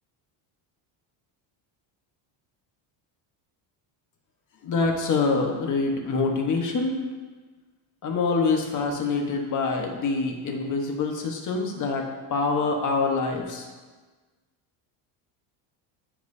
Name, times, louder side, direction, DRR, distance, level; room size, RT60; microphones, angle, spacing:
voice 1, 4.6-7.0 8.0-13.7, left 4 dB, 35° left, 2 dB, 1.3 m, -25 dB
14.5 x 5.5 x 2.7 m, 1.3 s
cardioid pair, 150°, 49 cm